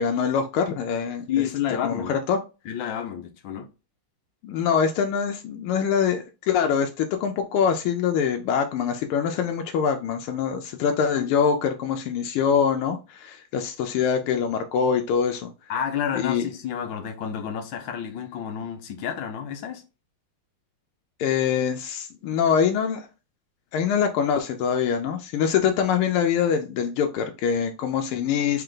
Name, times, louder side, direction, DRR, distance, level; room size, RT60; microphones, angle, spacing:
voice 1, 0.0-1.3 1.8-2.4 4.4-15.5 16.1-16.4 21.2-23.1 23.7-28.6, left 7 dB, 85° left, 1.5 m, -24 dB
voice 2, 1.3-2.1 2.6-3.7 15.7-19.8, left 9 dB, 70° left, 1.3 m, -30 dB
3.9 x 3.4 x 3.7 m
omnidirectional pair, 2.4 m